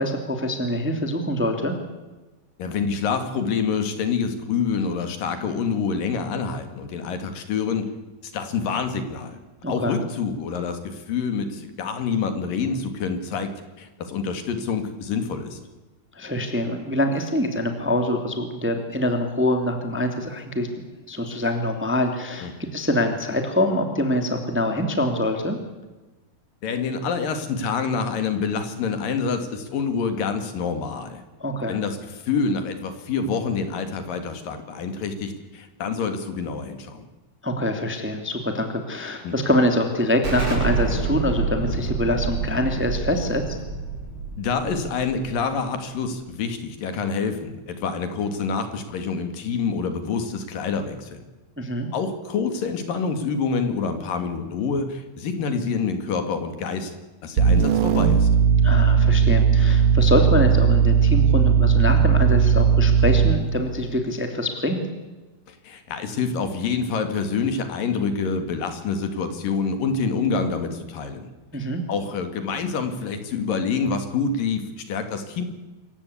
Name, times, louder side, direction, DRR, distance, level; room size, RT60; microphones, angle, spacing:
voice 1, 0.0-1.7 9.6-10.0 16.1-20.7 21.1-25.6 31.4-31.8 37.4-43.6 51.6-51.9 58.6-64.8 71.5-71.8, left 1 dB, 5° right, 5 dB, 1.9 m, -24 dB
voice 2, 2.6-7.9 8.2-9.4 9.7-13.5 13.8-15.6 22.4-22.5 26.6-31.2 31.7-37.1 39.2-39.4 44.4-51.2 51.9-56.9 57.2-58.3 65.5-71.3 71.9-75.5, left 5 dB, 70° left, 8 dB, 3.7 m, -27 dB
Explosion, 40.2-45.7, right 4 dB, 40° right, 8.0 m, -28 dB
sound 1, 57.4-63.5, right 7 dB, 85° right, 3.5 m, -17 dB
26.5 x 15.5 x 8.5 m, 1.1 s
omnidirectional pair, 4.1 m